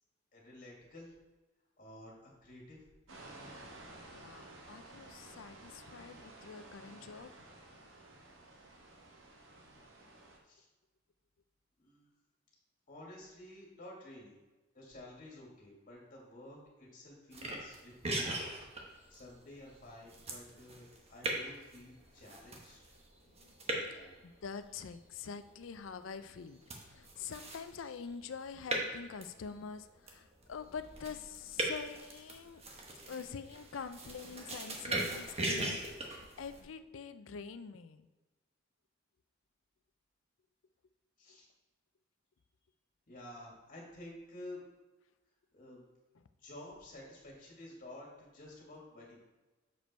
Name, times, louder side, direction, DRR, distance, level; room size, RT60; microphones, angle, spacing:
voice 1, 0.3-1.1 1.8-2.8 10.4-10.7 11.8-12.1 12.9-14.4 14.7-18.5 19.1-22.9 23.6-24.2 41.2-41.5 43.1-44.6 45.5-45.8 46.4-49.2, left 1 dB, 45° left, -3 dB, 2.3 m, -52 dB
sound 1, 3.1-10.4, right 2 dB, 85° right, 1.3 m, -53 dB
voice 2, 4.1-7.3 23.3-23.5 23.9-32.6 33.1-38.1, left 6 dB, 80° left, 11 dB, 0.4 m, -46 dB
sound 2, 17.3-36.6, right 1 dB, 30° right, 1.1 m, -41 dB
6.8 x 5.2 x 4.4 m, 1.1 s
head